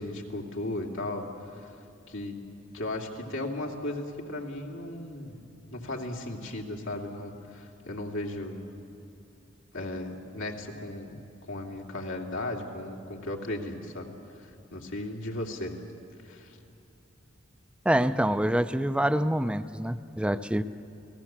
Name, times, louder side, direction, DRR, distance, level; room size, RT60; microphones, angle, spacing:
voice 1, 0.0-1.7 2.1-2.4 2.7-5.4 5.7-8.6 9.7-11.2 11.5-14.1 14.4-15.8 16.2-16.6, left 1 dB, 85° left, 0 dB, 2.7 m, -36 dB
voice 2, 17.9-20.6, right 1 dB, 5° right, 11 dB, 0.6 m, -26 dB
29.5 x 18.5 x 7.4 m, 2.8 s
head